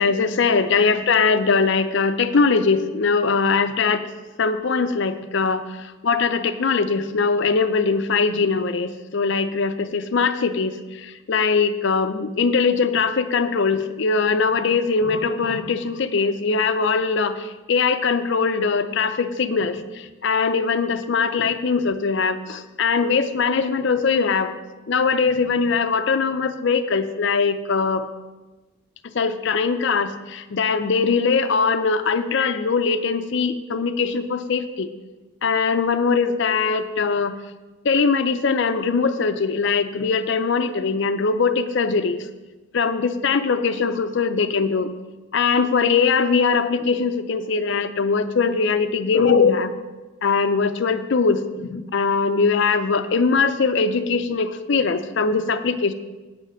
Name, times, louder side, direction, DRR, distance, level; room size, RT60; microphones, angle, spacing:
voice 1, 0.0-4.1 4.4-24.5 24.9-28.1 29.1-34.9 35.4-37.4 37.8-42.3 42.7-44.9 45.3-49.7 50.2-55.9, left 5 dB, 55° left, 10 dB, 0.5 m, -21 dB
8.9 x 6.5 x 6.3 m, 1.2 s
head